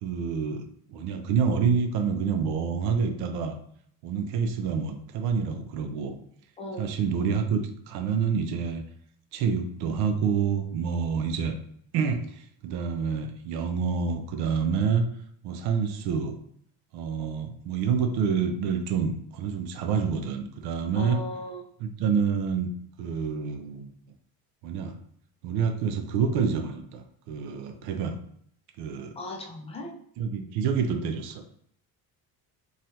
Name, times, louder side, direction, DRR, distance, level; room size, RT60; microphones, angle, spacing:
voice 1, 0.0-0.6 0.9-3.5 4.0-6.1 6.8-8.8 9.3-11.6 11.9-12.2 12.6-15.1 15.4-16.4 16.9-21.2 21.8-22.7 23.0-23.9 24.6-24.9 25.4-28.2 28.8-29.1 30.2-31.5, right 6 dB, 75° right, 6 dB, 0.6 m, -27 dB
voice 2, 6.6-6.9 21.0-21.6 29.2-30.0, left 1 dB, 15° left, 1 dB, 0.4 m, -37 dB
3.1 x 2.4 x 2.7 m, 0.65 s
cardioid pair, 140°, 39 cm